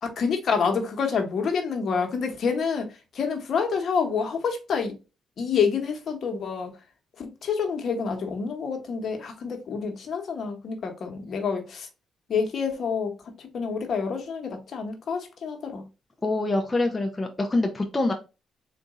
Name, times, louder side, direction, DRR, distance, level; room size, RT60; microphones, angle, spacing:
voice 1, 0.2-4.9 5.4-6.7 7.2-11.9 12.3-15.8, left 5 dB, 55° left, 1.1 m, -28 dB
voice 2, 16.2-18.1, left 2 dB, 20° left, 0.6 m, -25 dB
4.0 x 2.5 x 3.6 m
cardioid pair, 90°, 0 cm